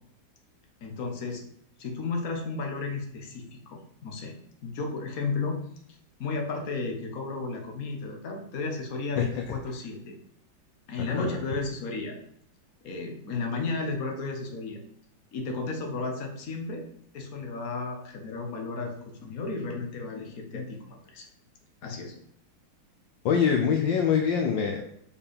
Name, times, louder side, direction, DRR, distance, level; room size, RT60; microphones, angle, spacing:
voice 1, 0.8-1.4 1.8-4.3 4.6-5.6 6.2-10.1 10.9-12.2 12.8-14.8 15.3-16.8 17.1-21.3 21.8-22.1, left 3 dB, 45° left, 1 dB, 1.6 m, -33 dB
voice 2, 11.1-11.4 23.2-24.8, left 7 dB, 70° left, 3 dB, 1.4 m, -24 dB
6.8 x 4.9 x 5.3 m, 0.71 s
omnidirectional pair, 2.3 m